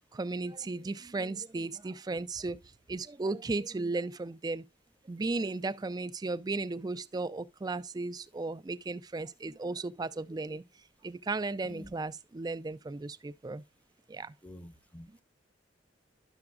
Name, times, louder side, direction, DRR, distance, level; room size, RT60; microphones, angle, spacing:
voice 1, 0.1-2.6 2.9-4.6 5.1-10.6 11.0-13.6 14.1-14.3, right 3 dB, 20° right, 0.4 m, -35 dB
voice 2, 14.4-15.2, left 1 dB, 10° left, 0.7 m, -48 dB
10.5 x 6.9 x 2.4 m
head